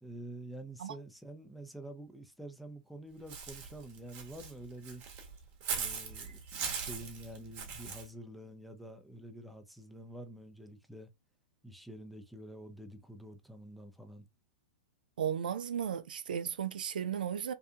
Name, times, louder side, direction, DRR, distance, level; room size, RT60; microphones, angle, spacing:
voice 1, 0.0-5.0 5.7-11.1 11.6-14.3, right 1 dB, ahead, 0.4 m, -48 dB
Walk footsteps / Bird, 3.3-8.1, right 6 dB, 40° right, 0.9 m, -40 dB
voice 2, 15.2-17.5, right 8 dB, 75° right, 0.3 m, -35 dB
2.7 x 2.4 x 2.2 m
hypercardioid pair, 120°, 5 cm